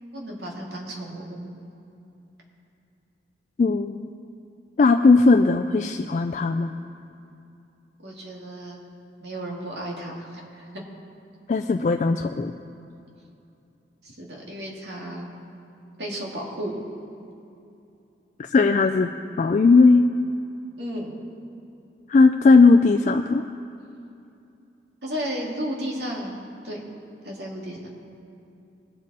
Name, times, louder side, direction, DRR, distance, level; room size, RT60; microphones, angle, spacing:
voice 1, 0.1-1.4 8.0-8.8 9.2-10.8 14.0-15.3 16.0-16.8 20.8-21.1 25.0-26.3 26.6-26.8 27.2-27.8, equal, 75° right, -2 dB, 2.2 m, -33 dB
voice 2, 3.6-4.1 4.8-6.7 11.5-12.5 18.5-19.1 19.4-20.0 22.1-23.4, left 3 dB, 45° left, 5 dB, 0.3 m, -17 dB
19.5 x 7.4 x 4.2 m, 2.7 s
head